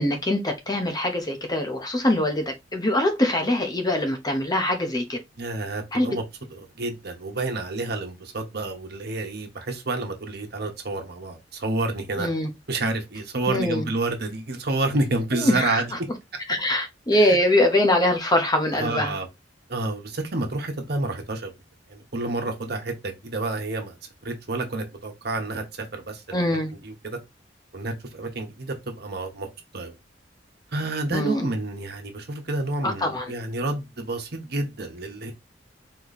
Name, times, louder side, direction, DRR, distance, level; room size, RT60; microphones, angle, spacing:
voice 1, 0.0-5.2 5.9-6.1 12.2-12.5 13.5-13.9 15.4-15.8 16.5-19.2 26.3-26.7 31.1-31.5 32.8-33.3, left 1 dB, 20° left, 0.9 m, -23 dB
voice 2, 5.4-6.2 6.5-12.3 12.7-15.9 17.2-17.4 18.7-19.3 19.7-21.5 21.9-24.0 24.2-27.2 27.7-29.5 29.7-29.9 30.7-35.3, right 2 dB, 60° right, 1.2 m, -29 dB
4.3 x 3.1 x 4.0 m
head